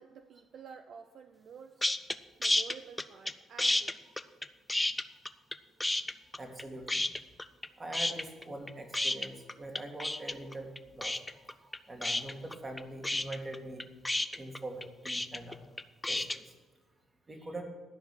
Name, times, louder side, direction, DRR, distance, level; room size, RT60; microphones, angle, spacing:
voice 1, 0.0-1.8 2.4-4.0, right 6 dB, 65° right, 8 dB, 0.6 m, -50 dB
sound 1, 1.8-2.2 2.4-3.3 3.6-5.6 5.8-6.6 6.9-7.7 7.9-16.4, left 1 dB, 15° left, 0.6 m, -31 dB
voice 2, 6.4-7.0 7.8-13.9 14.4-15.6 16.1-16.5 17.3-17.6, right 1 dB, 30° right, 3 dB, 2.2 m, -43 dB
12.0 x 5.3 x 8.4 m, 1.4 s
supercardioid pair, 60°, 0 cm